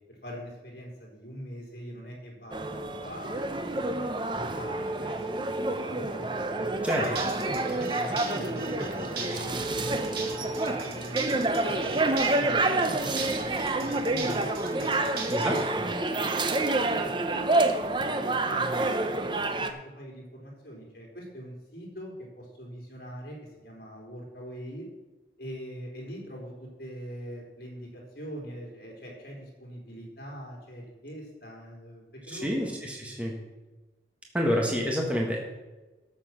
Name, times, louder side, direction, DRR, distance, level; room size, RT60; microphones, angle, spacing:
voice 1, 0.1-4.0 4.5-10.0 10.2-12.0 12.4-16.3 16.6-17.9 18.2-19.2 19.5-23.4 23.6-24.9 25.4-32.7, equal, 55° left, -2 dB, 3.8 m, -42 dB
sound 1, 2.5-19.7, right 2 dB, 25° right, 0.7 m, -28 dB
sound 2, 6.9-15.7, right 4 dB, 60° right, 1.9 m, -40 dB
voice 2, 15.3-15.8 32.3-33.3 34.3-35.4, equal, 10° right, -1 dB, 1.6 m, -28 dB
13.0 x 7.5 x 5.9 m, 1.2 s
head